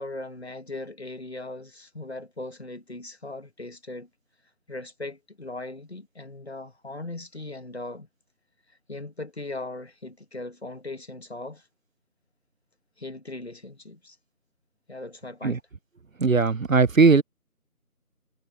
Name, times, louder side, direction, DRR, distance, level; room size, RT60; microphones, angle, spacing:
voice 1, 0.0-4.1 4.7-8.1 8.9-11.7 13.0-14.2 14.9-15.6, left 2 dB, 45° left, 1.9 m, -38 dB
voice 2, 16.2-17.2, right 4 dB, 60° right, 0.6 m, -18 dB
figure-of-eight pair, 175°, 45 cm